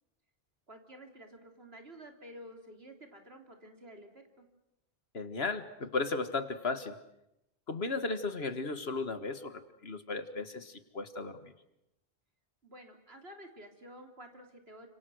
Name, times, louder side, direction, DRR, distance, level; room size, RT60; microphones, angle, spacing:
voice 1, 0.7-4.5 12.6-14.9, equal, 65° right, 4 dB, 3.6 m, -51 dB
voice 2, 5.1-7.0 7.7-11.5, left 3 dB, 65° left, 10 dB, 1.9 m, -35 dB
30.0 x 26.5 x 6.4 m, 0.85 s
omnidirectional pair, 1.1 m